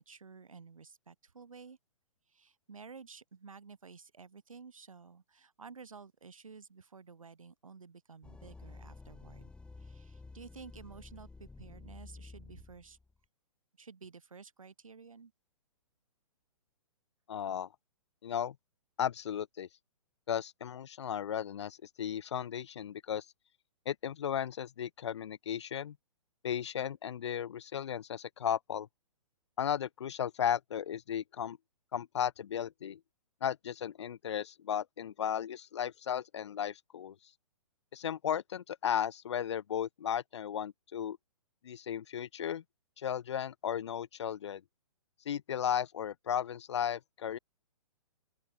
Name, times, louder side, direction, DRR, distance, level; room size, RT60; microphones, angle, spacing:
voice 1, 0.0-1.8 2.3-9.5 9.8-13.0 13.8-15.3, right 5 dB, 65° right, 5.1 m, -52 dB
sound 1, 8.2-13.2, left 3 dB, 5° left, 2.7 m, -51 dB
voice 2, 17.3-17.7 18.2-18.6 19.0-19.7 20.3-23.3 23.9-26.0 26.4-28.9 29.6-31.6 31.9-33.0 33.4-37.2 37.9-41.2 41.6-42.6 43.0-44.6 45.3-47.4, left 9 dB, 50° left, 0.4 m, -35 dB
open air
figure-of-eight pair, 125°, 19 cm